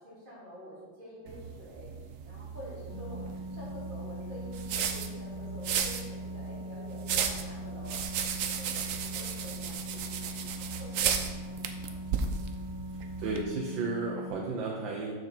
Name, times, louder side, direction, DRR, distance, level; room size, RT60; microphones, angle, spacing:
voice 1, 0.0-12.3, left 1 dB, 25° right, -8 dB, 2.6 m, -48 dB
sound 1, 1.3-13.4, right 7 dB, 70° right, 0.7 m, -35 dB
sound 2, 2.9-14.3, equal, 45° right, 3.4 m, -41 dB
voice 2, 13.2-15.1, right 3 dB, 90° right, -2 dB, 1.6 m, -33 dB
6.7 x 6.7 x 4.4 m, 1.4 s
omnidirectional pair, 2.0 m